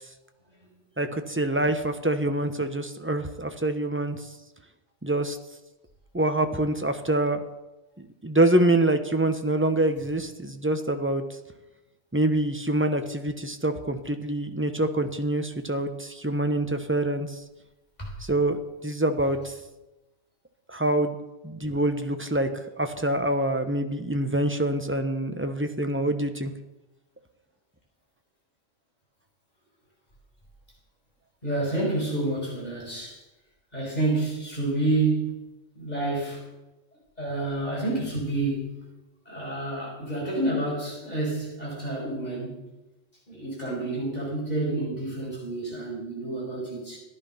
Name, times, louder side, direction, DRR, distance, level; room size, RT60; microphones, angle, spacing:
voice 1, 1.0-4.2 5.0-5.4 6.1-7.4 8.0-11.2 12.1-17.3 18.3-19.4 20.7-21.1 21.4-22.5 22.8-26.5, right 1 dB, 10° right, 7 dB, 0.9 m, -25 dB
voice 2, 31.4-33.2 33.7-35.3 35.8-36.5 37.2-38.8 39.3-42.6 43.3-47.0, right 2 dB, 35° left, -4 dB, 5.8 m, -29 dB
14.5 x 10.5 x 5.7 m, 1.0 s
omnidirectional pair, 1.3 m